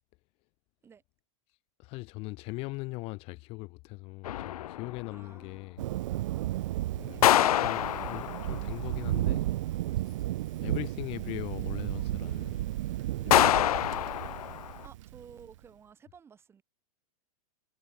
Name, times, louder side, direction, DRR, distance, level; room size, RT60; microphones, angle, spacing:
voice 1, 1.8-5.8 6.9-7.3 7.6-9.5 10.6-12.6 13.1-14.0, left 24 dB, 30° left, 2.2 m, -40 dB
sound 1, 4.2-5.2 7.2-8.8 13.3-14.9, left 12 dB, 80° left, 0.6 m, -26 dB
voice 2, 5.1-5.7 7.0-7.4 14.8-16.6, right 7 dB, 15° right, 7.8 m, -54 dB
Thunder, 5.8-15.4, right 15 dB, 60° right, 0.5 m, -33 dB
supercardioid pair, 165°, 19 cm